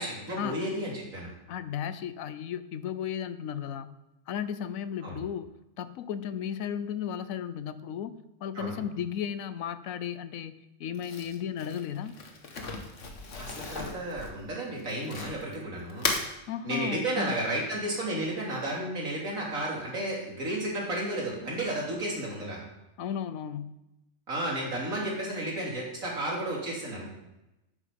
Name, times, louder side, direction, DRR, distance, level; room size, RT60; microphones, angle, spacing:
voice 1, 0.0-1.3 5.0-5.2 8.6-8.8 13.4-16.1 16.6-22.6 24.3-27.1, right 1 dB, 90° right, -3 dB, 3.4 m, -32 dB
voice 2, 1.5-3.9 4.3-8.1 8.4-12.2 16.5-17.4 23.0-23.8, left 9 dB, 80° left, 13 dB, 1.1 m, -35 dB
Crumpling crinkling, 10.9-15.5 15.9-16.3, left 3 dB, 65° left, 1.6 m, -35 dB
10.5 x 8.5 x 5.2 m, 0.94 s
omnidirectional pair, 1.4 m